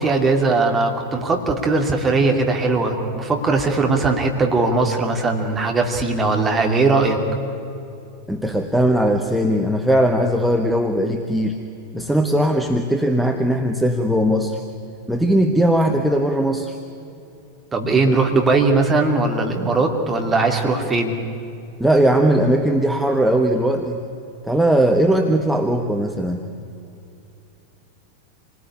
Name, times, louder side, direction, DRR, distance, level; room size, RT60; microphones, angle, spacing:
voice 1, 0.0-7.2 17.7-21.1, right 3 dB, 15° right, 2 dB, 2.7 m, -19 dB
voice 2, 8.3-11.6 11.9-14.6 15.1-16.8 21.8-24.0 24.4-26.4, right 1 dB, ahead, 2 dB, 1.4 m, -19 dB
28.0 x 20.0 x 9.9 m, 2.7 s
figure-of-eight pair, 90°, 0 cm